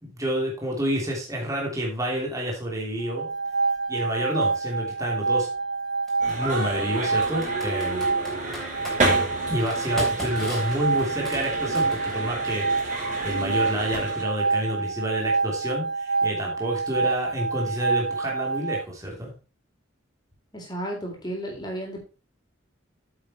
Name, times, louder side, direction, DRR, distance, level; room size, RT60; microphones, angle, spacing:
voice 1, 0.0-3.3 3.9-5.5 6.3-8.1 9.5-19.3, equal, 15° right, -2 dB, 3.0 m, -29 dB
sound 1, 3.0-18.8, right 4 dB, 80° right, 2.0 m, -27 dB
Computer keyboard, 4.4-4.5 6.1-6.3 7.2-9.0 9.6-12.3, equal, ahead, 3.5 m, -37 dB
sound 2, 6.2-14.2, right 2 dB, 40° right, 5.1 m, -31 dB
voice 2, 20.5-22.1, right 1 dB, 20° left, 0 dB, 3.7 m, -33 dB
9.1 x 7.6 x 4.4 m, 0.32 s
head